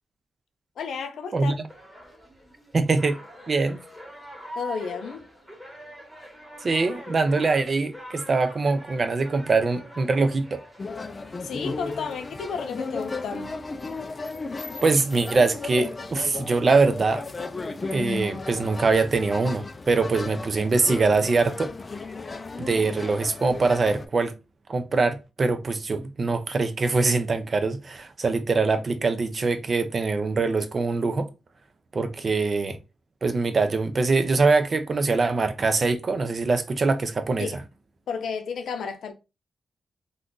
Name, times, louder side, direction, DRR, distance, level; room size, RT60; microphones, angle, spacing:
voice 1, 0.8-1.5 4.6-5.3 11.4-13.6 32.2-32.3 37.4-37.6 38.1-39.1, left 6 dB, 85° left, 0.5 m, -32 dB
voice 2, 1.3-1.6 2.7-3.2 3.5-3.8 6.6-10.6 14.8-17.2 17.9-21.7 22.6-24.3 24.7-31.3 31.9-32.8 33.2-37.5, right 3 dB, 40° right, 0.5 m, -23 dB
sound 1, 1.7-13.3, equal, 5° right, 1.3 m, -44 dB
sound 2, 10.8-24.1, left 3 dB, 30° left, 0.4 m, -35 dB
2.5 x 2.3 x 3.7 m
wide cardioid pair, 110°, 0 cm